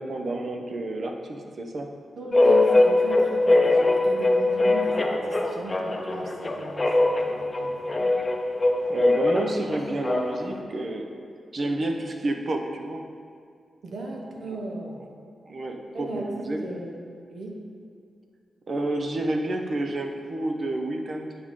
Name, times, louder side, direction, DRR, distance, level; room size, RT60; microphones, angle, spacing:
voice 1, 0.0-1.9 8.9-11.1 11.5-13.1 14.5-14.6 15.4-16.6 18.7-21.4, right 2 dB, 50° right, 3 dB, 0.8 m, -30 dB
voice 2, 2.2-8.2 13.8-15.1 15.9-17.0 17.3-17.6, right 2 dB, 70° right, 0 dB, 1.1 m, -37 dB
sound 1, 2.3-10.6, left 2 dB, 25° left, 0.7 m, -22 dB
9.7 x 4.9 x 3.7 m, 2.2 s
cardioid pair, 85°, 0 cm